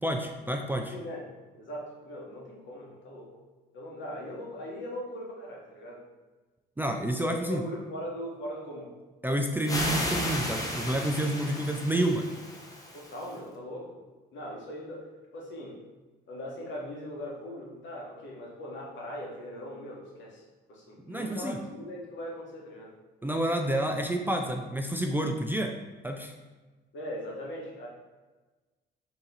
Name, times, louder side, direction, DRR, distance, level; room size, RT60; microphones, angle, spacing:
voice 1, 0.0-0.9 6.8-7.6 9.2-12.3 21.1-21.6 23.2-25.8 26.0-26.3, right 1 dB, 10° right, 3 dB, 0.3 m, -29 dB
voice 2, 0.9-3.4 3.7-6.0 7.3-8.9 12.9-14.0 14.3-15.1 15.3-15.8 16.3-20.4 20.7-22.9 26.9-27.9, equal, 70° left, -2 dB, 1.2 m, -40 dB
sound 1, 9.6-13.3, left 1 dB, 15° left, 0.8 m, -34 dB
3.7 x 2.9 x 4.0 m, 1.3 s
cardioid pair, 90°, 20 cm